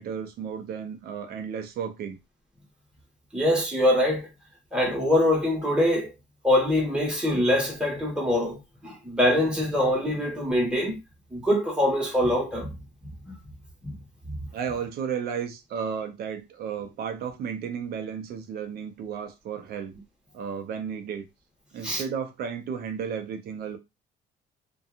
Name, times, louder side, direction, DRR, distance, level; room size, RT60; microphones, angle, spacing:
voice 1, 0.0-2.2 14.5-20.0 20.3-21.2 21.7-23.8, right 7 dB, 65° right, 0.7 m, -33 dB
voice 2, 3.3-4.3 4.7-6.1 6.4-10.9 11.3-12.7 13.8-13.9 14.3-14.4 21.8-22.0, left 1 dB, 5° right, 1.4 m, -24 dB
2.7 x 2.3 x 2.4 m
cardioid pair, 110°, 17 cm